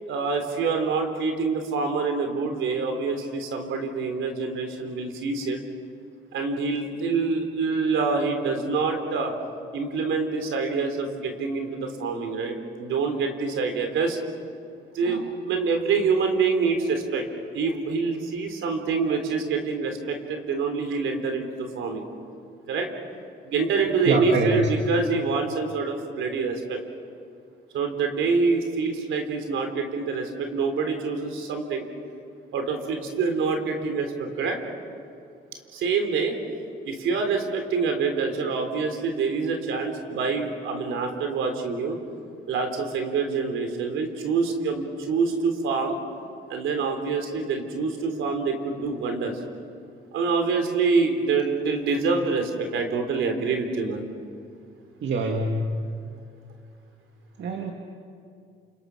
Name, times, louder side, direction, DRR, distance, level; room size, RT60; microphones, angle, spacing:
voice 1, 0.1-5.6 6.3-9.3 9.7-14.2 14.9-17.2 17.5-22.0 22.7-22.9 23.4-26.8 27.7-31.9 32.5-34.6 35.7-36.4 36.9-42.0 42.5-46.0 46.5-49.4 50.1-54.1, right 4 dB, 80° right, 5 dB, 3.5 m, -26 dB
voice 2, 24.0-24.7 55.0-55.9 57.4-57.7, right 2 dB, 65° right, 2 dB, 2.1 m, -25 dB
29.0 x 28.0 x 6.2 m, 2.4 s
cardioid pair, 90°, 20 cm